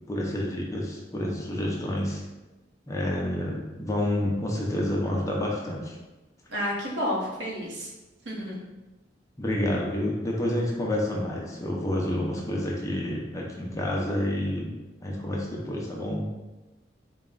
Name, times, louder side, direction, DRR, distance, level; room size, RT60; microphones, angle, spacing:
voice 1, 0.1-2.2 2.9-6.0 9.4-14.7 15.0-16.3, left 1 dB, 15° left, -3 dB, 0.6 m, -29 dB
voice 2, 6.5-7.9 8.2-8.6, equal, 90° right, -4 dB, 1.0 m, -30 dB
3.9 x 2.2 x 3.8 m, 1.1 s
head